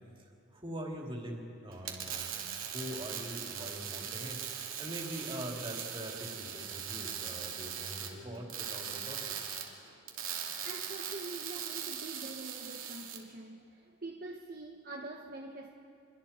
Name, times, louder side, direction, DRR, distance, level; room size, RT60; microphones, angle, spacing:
voice 1, 0.5-2.5 2.7-4.4 4.8-9.5, right 1 dB, 25° right, 2.9 m, -43 dB
sound 1, 1.7-13.2, right 8 dB, 80° right, 2.5 m, -40 dB
voice 2, 10.4-15.7, right 2 dB, 45° right, 1.2 m, -45 dB
28.0 x 23.0 x 4.4 m
head